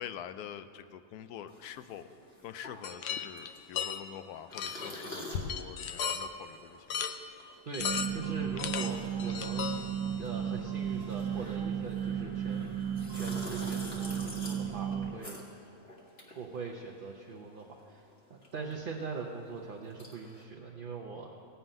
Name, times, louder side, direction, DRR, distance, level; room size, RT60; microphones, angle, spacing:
voice 1, 0.0-2.1 2.4-7.0, left 9 dB, 85° left, 12 dB, 1.1 m, -45 dB
sound 1, 1.5-17.3 17.5-20.4, left 1 dB, 40° left, 2.1 m, -48 dB
sound 2, 2.8-4.0 4.5-4.9 5.3-6.3 6.9-7.2 7.7-8.3 8.6-10.3, left 7 dB, 60° left, 0.7 m, -35 dB
voice 2, 7.7-9.7 10.2-12.7 13.1-15.4 16.3-18.0 18.3-21.3, right 4 dB, 45° right, 0 dB, 0.8 m, -42 dB
sound 3, 7.8-15.2, right 8 dB, 65° right, 1.2 m, -34 dB
17.0 x 5.7 x 9.0 m, 2.6 s
omnidirectional pair, 1.6 m